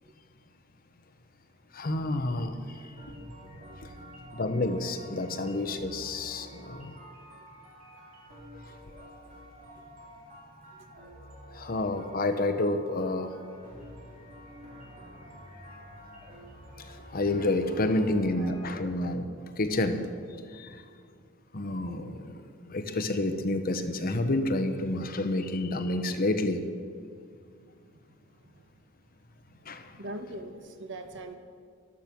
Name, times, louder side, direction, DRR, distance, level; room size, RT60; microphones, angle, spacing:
voice 1, 1.7-2.9 4.3-6.9 11.5-13.3 16.8-19.3 19.6-20.9 21.5-26.6 29.6-30.0, left 2 dB, 45° left, 8 dB, 0.9 m, -29 dB
sound 1, 2.6-18.7, equal, 40° right, 4.3 m, -49 dB
voice 2, 3.0-4.3 9.7-10.0 10.5-11.1 14.1-14.2 18.1-18.9 27.9-28.7 29.5-31.4, right 1 dB, 60° right, 7 dB, 1.3 m, -45 dB
13.5 x 12.0 x 6.1 m, 2.2 s
head